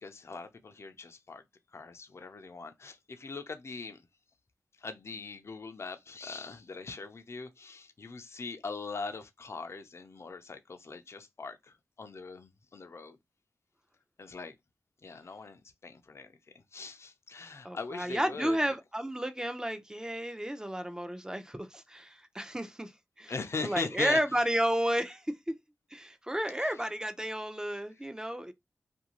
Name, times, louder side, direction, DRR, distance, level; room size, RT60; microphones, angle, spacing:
voice 1, 0.0-1.4 1.7-4.0 4.8-13.2 14.2-14.5 15.0-18.6 23.3-24.2, left 4 dB, 55° left, 0.5 m, -41 dB
voice 2, 17.6-22.9 23.2-23.3 23.6-25.5 25.9-28.5, equal, 10° right, 0.6 m, -32 dB
2.6 x 2.3 x 2.9 m
cardioid pair, 45°, 5 cm